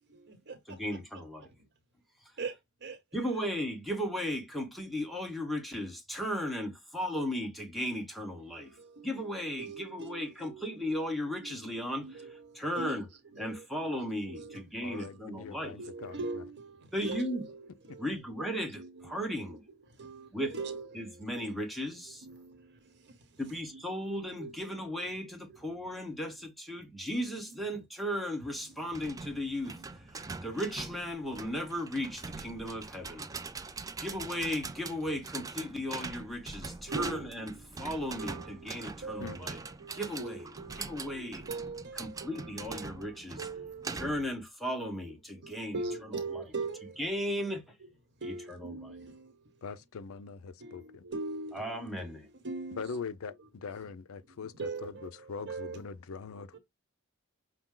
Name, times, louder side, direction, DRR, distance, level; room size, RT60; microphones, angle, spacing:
voice 1, 0.0-1.0 2.4-3.0 3.3-3.4 8.4-13.0 13.3-14.6 14.9-19.6 19.9-21.5 22.2-23.4 23.7-23.8 24.4-24.8 26.0-26.1 27.5-27.6 28.8-28.9 29.7-29.8 33.7-34.0 36.9-37.8 38.2-44.2 45.4-47.0 47.4-47.5 48.2-49.6 50.6-52.1 52.4-52.9 54.3-55.8 56.5-56.6, right 3 dB, 55° right, 1.3 m, -43 dB
voice 2, 0.7-1.5 2.2-2.3 3.1-8.8 9.0-12.2 12.5-13.1 13.4-15.8 16.9-17.4 18.0-19.6 20.3-20.5 20.9-22.3 23.4-33.3 33.7-39.6 39.9-40.5 40.8-41.4 41.9-43.5 44.0-46.4 47.0-47.8 48.2-48.9 51.5-52.3, equal, ahead, 1.2 m, -36 dB
voice 3, 14.8-16.2 17.9-18.0 39.2-39.4 49.6-51.0 52.8-56.6, left 5 dB, 70° left, 0.5 m, -42 dB
sound 1, 28.9-44.4, right 4 dB, 15° right, 0.4 m, -43 dB
5.8 x 2.2 x 3.7 m
head